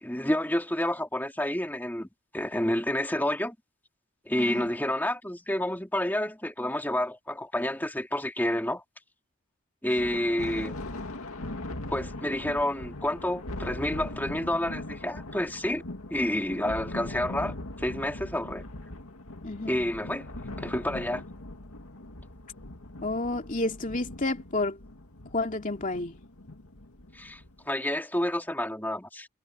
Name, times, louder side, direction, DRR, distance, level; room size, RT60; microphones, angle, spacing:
voice 1, 0.0-2.1 2.3-3.5 4.3-8.8 9.8-10.8 11.9-15.8 16.1-18.6 19.7-20.3 20.6-21.2 27.1-27.4 27.7-29.3, left 1 dB, 10° left, 2.9 m, -29 dB
voice 2, 4.4-4.7 19.4-19.9 23.0-24.8 25.3-26.1, left 2 dB, 35° left, 2.6 m, -30 dB
Thunder, 10.0-27.6, left 1 dB, 75° left, 2.2 m, -40 dB
head